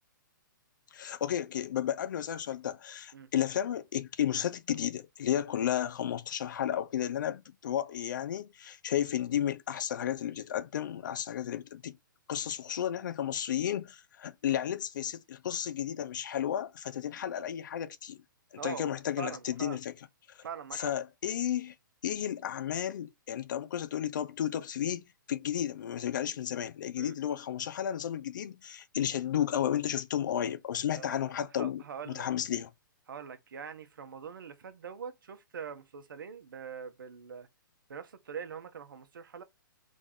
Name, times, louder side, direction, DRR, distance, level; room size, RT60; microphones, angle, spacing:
voice 1, 0.9-11.9 12.3-18.2 18.5-19.9 20.7-21.7 22.0-32.7, left 10 dB, 60° left, 0.7 m, -33 dB
voice 2, 18.6-19.8 20.4-20.9 27.0-27.1 30.9-31.2 31.6-32.3 33.1-37.5 37.9-39.4, right 7 dB, 75° right, 1.1 m, -43 dB
3.7 x 3.6 x 3.9 m
hypercardioid pair, 130°, 11 cm